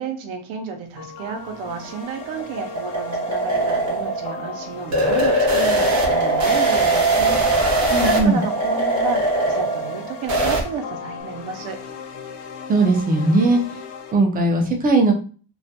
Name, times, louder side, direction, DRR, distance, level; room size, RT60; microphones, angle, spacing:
voice 1, 0.0-7.4 8.0-11.8, right 4 dB, 75° right, 5 dB, 0.7 m, -31 dB
sound 1, 1.0-14.1, left 5 dB, 65° left, 0.6 m, -38 dB
sound 2, 1.6-10.6, right 2 dB, 35° right, 0.7 m, -21 dB
voice 2, 7.9-8.4 12.7-13.8 14.1-15.1, right 2 dB, 20° right, 3 dB, 0.3 m, -18 dB
2.3 x 2.1 x 2.7 m, 0.40 s
cardioid pair, 130°, 48 cm